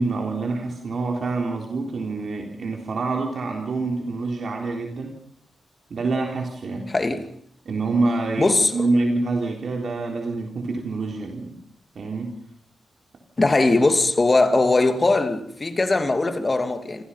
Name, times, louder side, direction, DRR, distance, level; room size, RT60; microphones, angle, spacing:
voice 1, 0.0-5.2 5.9-6.9 7.7-11.6 12.0-12.3, right 3 dB, 50° right, 3.7 m, -26 dB
voice 2, 6.9-7.3 8.4-8.7 13.4-17.0, left 2 dB, 20° left, 2.5 m, -20 dB
29.0 x 27.5 x 5.7 m
wide cardioid pair, 165°, 0 cm